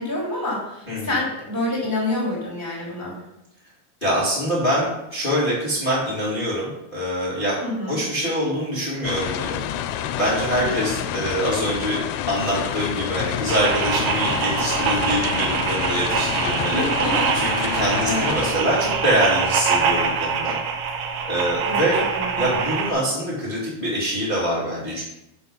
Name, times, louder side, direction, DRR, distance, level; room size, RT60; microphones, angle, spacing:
voice 1, 0.0-3.2 7.6-8.0 10.6-10.7 16.7-17.3 17.6-17.7 18.0-18.4 21.7-21.8 22.1-22.6, left 2 dB, 5° right, -6 dB, 2.1 m, -27 dB
voice 2, 4.0-12.0 12.3-16.9 17.3-20.6 21.3-22.0 22.4-25.0, equal, 20° left, -7 dB, 1.7 m, -24 dB
sound 1, 9.0-18.5, left 10 dB, 85° left, 2.7 m, -28 dB
sound 2, 13.5-22.9, right 6 dB, 85° right, 1.9 m, -24 dB
6.9 x 6.8 x 5.4 m, 0.86 s
omnidirectional pair, 4.8 m